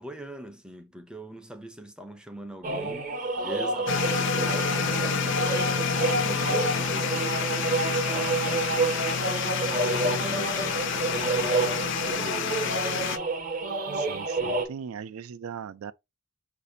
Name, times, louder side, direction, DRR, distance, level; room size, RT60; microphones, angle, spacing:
voice 1, 0.0-3.1 3.4-9.1 9.9-13.2, equal, 5° right, 0.4 m, -42 dB
sound 1, 2.6-14.7, right 3 dB, 40° right, 0.7 m, -29 dB
sound 2, 3.9-13.2, left 7 dB, 60° left, 0.4 m, -29 dB
voice 2, 13.9-15.9, right 7 dB, 85° right, 0.4 m, -39 dB
4.9 x 2.6 x 2.6 m
head